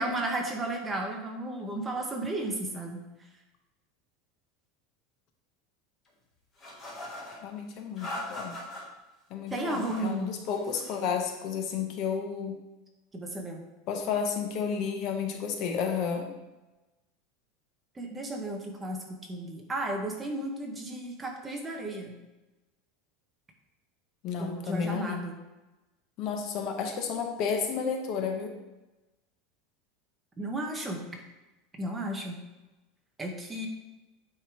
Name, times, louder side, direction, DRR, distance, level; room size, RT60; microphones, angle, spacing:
voice 1, 0.0-3.0 9.5-10.3 13.1-13.6 17.9-19.0 19.3-22.1 24.4-25.3 30.4-31.0 31.8-32.4 33.2-33.7, right 1 dB, 10° right, 2 dB, 0.9 m, -33 dB
sound 1, 6.6-7.4 8.0-8.8 9.5-10.1 10.4-11.0, left 1 dB, 20° left, 1.7 m, -40 dB
voice 2, 7.4-8.6 9.3-12.6 13.9-16.3 24.2-25.3 26.2-28.6, left 6 dB, 40° left, 5 dB, 0.9 m, -32 dB
9.2 x 3.7 x 4.5 m, 1.1 s
supercardioid pair, 175°, 0 cm